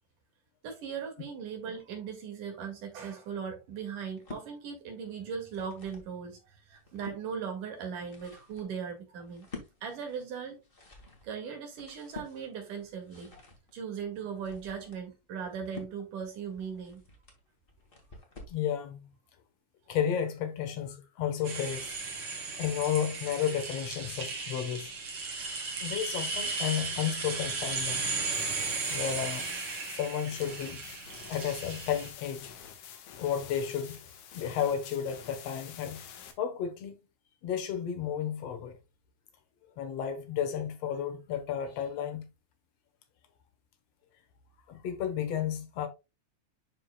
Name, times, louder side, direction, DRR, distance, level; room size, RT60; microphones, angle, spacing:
voice 1, 0.6-9.5 9.8-10.6 11.2-13.3 13.7-17.0 19.9-20.0, right 6 dB, 75° right, 3.5 m, -38 dB
book open close, 4.0-4.5 5.2-6.1 6.6-7.2 7.8-18.6, left 3 dB, 25° left, 1.2 m, -50 dB
voice 2, 18.5-19.1 19.9-21.9 22.6-24.9 25.8-28.1 28.9-29.5 29.9-30.8 31.3-32.5 33.2-34.0 34.3-36.0 36.4-37.0 37.4-38.7 39.8-42.3 44.7-45.9, left 9 dB, 60° left, 1.9 m, -32 dB
sound 1, 21.4-32.1, right 4 dB, 45° right, 2.4 m, -35 dB
sound 2, 28.3-36.3, left 8 dB, 85° left, 2.8 m, -48 dB
11.5 x 4.8 x 2.2 m
omnidirectional pair, 3.7 m